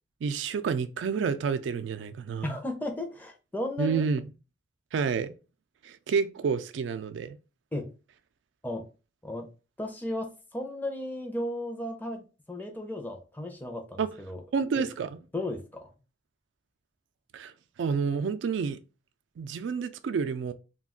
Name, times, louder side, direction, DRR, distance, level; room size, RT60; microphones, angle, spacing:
voice 1, 0.2-2.6 3.8-4.2 4.9-5.3 5.8-7.4 14.0-14.1 14.5-15.2 17.3-17.5 17.8-18.8 19.4-20.5, right 5 dB, 90° right, 0.3 m, -29 dB
voice 2, 2.4-4.1 7.7-7.9 8.6-8.9 9.2-9.5 9.8-14.4 14.8-14.9 15.3-15.9, left 1 dB, 10° left, 0.5 m, -35 dB
2.4 x 2.2 x 3.5 m
head